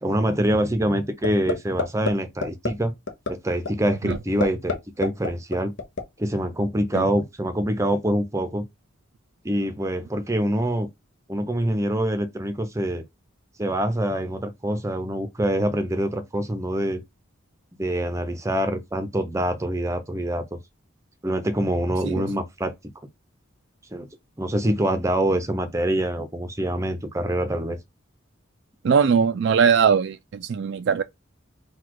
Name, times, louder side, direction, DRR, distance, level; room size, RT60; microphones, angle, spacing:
voice 1, 0.0-2.9 3.3-5.7 6.2-8.7 9.4-10.9 11.3-13.0 13.6-17.0 17.8-20.4 21.2-22.7 23.9-24.1 24.4-27.8, right 1 dB, 15° right, 0.6 m, -25 dB
sound 1, 1.2-1.5 1.8-2.1 2.4-2.7 3.1-3.3 3.6-3.7 4.1-4.7 5.0-6.0, left 4 dB, 60° left, 0.8 m, -25 dB
voice 2, 28.8-31.0, right 6 dB, 55° right, 0.3 m, -20 dB
4.0 x 2.3 x 4.6 m
head